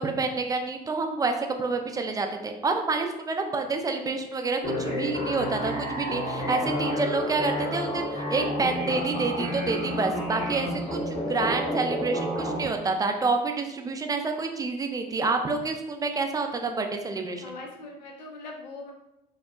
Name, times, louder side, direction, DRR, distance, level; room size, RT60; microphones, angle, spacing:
voice 1, 0.0-17.4, right 3 dB, 15° right, 4 dB, 0.4 m, -28 dB
sound 1, 4.6-12.6, left 1 dB, 50° left, 1.0 m, -30 dB
voice 2, 17.4-18.9, left 2 dB, 85° left, 0 dB, 0.5 m, -41 dB
2.7 x 2.1 x 2.3 m, 0.91 s
hypercardioid pair, 55°, 21 cm